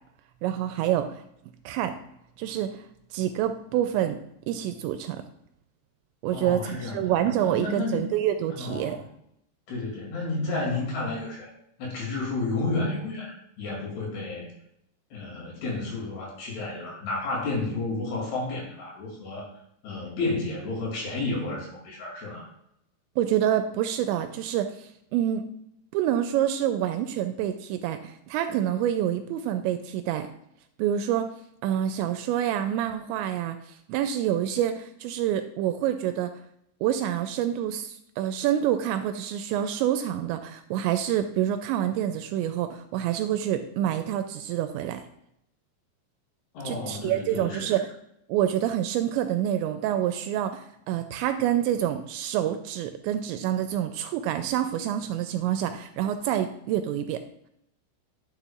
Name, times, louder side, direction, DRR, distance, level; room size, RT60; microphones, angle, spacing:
voice 1, 0.4-1.2 1.7-2.0 2.4-2.9 3.1-4.2 4.5-5.2 6.2-9.0 23.2-25.4 25.9-30.3 30.8-31.3 31.6-33.6 33.9-36.3 36.8-45.0 46.6-47.9 48.3-57.2, right 11 dB, 85° right, 8 dB, 2.7 m, -27 dB
voice 2, 6.3-8.1 8.6-9.0 9.7-11.5 11.8-14.5 15.1-19.5 19.8-22.5 46.5-47.8, left 3 dB, 60° left, -3 dB, 4.5 m, -31 dB
10.5 x 6.9 x 2.4 m, 0.76 s
omnidirectional pair, 5.4 m